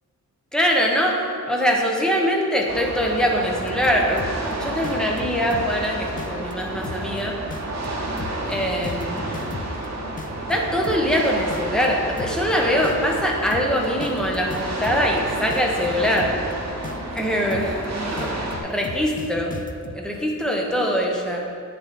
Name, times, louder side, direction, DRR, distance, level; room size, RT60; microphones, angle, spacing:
voice 1, 0.5-7.4 8.5-9.3 10.5-16.4 17.1-19.5 19.9-21.5, equal, ahead, -1 dB, 0.9 m, -23 dB
sound 1, 2.7-18.6, right 1 dB, 60° right, 1.1 m, -30 dB
sound 2, 3.6-4.5 4.8-5.8 6.2-6.5 6.8-7.2 7.5-9.8 10.2-11.2 11.5-11.9 12.2-12.5 12.8-15.2 15.5-16.5 16.8-17.2 17.5-17.8 18.2-20.0, left 4 dB, 30° left, 0.4 m, -36 dB
sound 3, 7.6-15.4, right 7 dB, 25° right, 0.6 m, -46 dB
8.0 x 6.8 x 4.0 m, 2.3 s
wide cardioid pair, 165°, 31 cm